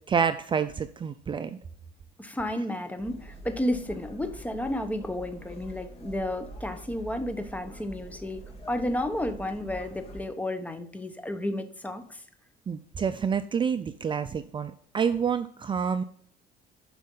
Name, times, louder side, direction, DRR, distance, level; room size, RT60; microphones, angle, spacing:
voice 1, 0.1-1.6 12.7-16.0, right 6 dB, 30° right, 10 dB, 0.5 m, -28 dB
voice 2, 2.2-8.4 8.7-12.2, left 1 dB, 10° left, 8 dB, 1.1 m, -32 dB
sound 1, 3.0-10.2, right 1 dB, 35° left, 2.8 m, -45 dB
11.0 x 5.3 x 3.9 m, 0.63 s
cardioid pair, 110°, 17 cm